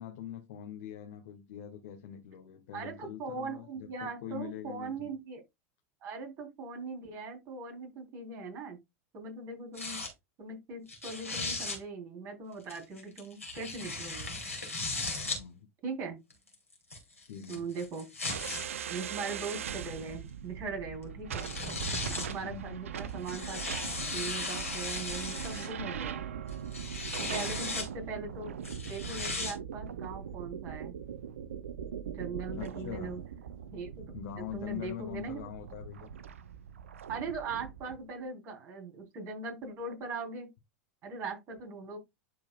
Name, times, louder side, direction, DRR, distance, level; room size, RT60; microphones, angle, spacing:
voice 1, 0.0-5.1 15.2-15.7 17.3-17.7 22.4-22.8 27.2-27.6 32.5-33.2 34.1-36.1, left 10 dB, 60° left, 1.5 m, -43 dB
voice 2, 2.7-5.4 6.0-8.8 9.1-10.0 10.4-14.4 15.8-16.2 17.5-18.0 18.9-21.5 22.1-26.2 27.2-28.5 28.9-31.0 32.1-33.2 33.7-34.1 34.4-35.4 37.1-40.5 41.0-42.0, right 4 dB, 40° right, 3.9 m, -40 dB
sound 1, 9.7-10.1 10.9-11.8 12.7-15.4 16.3-18.7 19.5-19.6 21.0-21.1 21.4-22.3 23.1-25.7 26.5-27.9 28.6-29.5, left 3 dB, 90° left, 3.0 m, -37 dB
sound 2, 18.3-38.0, right 8 dB, 70° right, 0.7 m, -41 dB
11.5 x 4.8 x 2.4 m
figure-of-eight pair, 85°, 7 cm